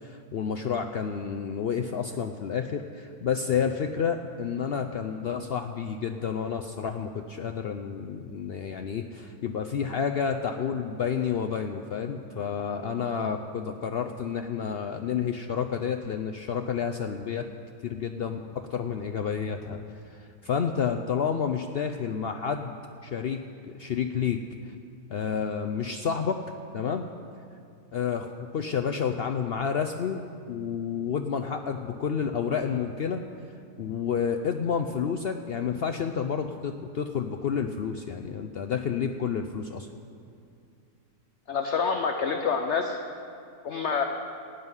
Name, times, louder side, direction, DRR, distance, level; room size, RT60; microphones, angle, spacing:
voice 1, 0.0-17.5 17.8-19.8 20.1-22.8 23.0-23.4 23.7-24.4 25.1-26.4 26.7-27.1 27.9-30.2 30.5-33.2 33.8-39.9, left 7 dB, 80° left, 5 dB, 0.5 m, -30 dB
voice 2, 41.5-43.0 43.6-44.0, left 5 dB, 55° left, 4 dB, 0.9 m, -27 dB
16.0 x 5.5 x 9.6 m, 2.5 s
omnidirectional pair, 1.7 m